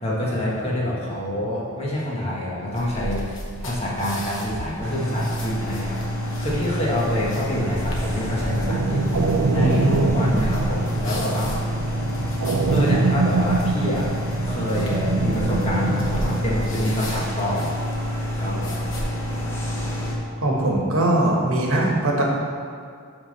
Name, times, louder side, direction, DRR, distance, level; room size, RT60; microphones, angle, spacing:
voice 1, 0.0-3.2 3.6-6.0 6.4-9.1 9.5-11.5 12.7-14.1 14.4-17.7 18.3-18.7, left 1 dB, 25° left, -5 dB, 1.3 m, -26 dB
sound 1, 2.7-19.0, equal, 60° left, 1.2 m, -34 dB
sound 2, 4.8-20.1, equal, 10° left, 0.9 m, -28 dB
sound 3, 8.5-16.4, right 3 dB, 85° right, 0.5 m, -24 dB
voice 2, 20.4-22.2, right 1 dB, 70° right, -1 dB, 1.2 m, -20 dB
8.1 x 3.8 x 5.2 m, 2.2 s
head